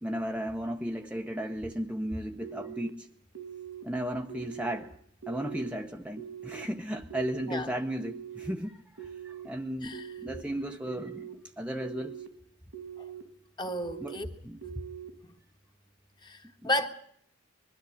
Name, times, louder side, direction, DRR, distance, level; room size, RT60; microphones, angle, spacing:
voice 1, 0.0-3.1 3.8-5.0 5.3-12.2 14.0-14.2 14.4-14.6 16.6-16.7, equal, 5° right, 0.8 m, -35 dB
sound 1, 2.4-2.9 3.4-3.8 4.3-4.8 5.2-5.7 6.2-6.7 7.1-7.6 8.0-8.5 9.0-9.5 9.9-10.4 10.9-11.3 11.8-12.3 12.7-13.2 13.7-14.2 14.6-15.1, right 9 dB, 85° right, 2.4 m, -42 dB
voice 2, 9.8-10.1 13.0-13.1 13.6-14.3 16.2-16.9, left 1 dB, 20° left, 1.5 m, -32 dB
21.5 x 13.5 x 9.8 m
head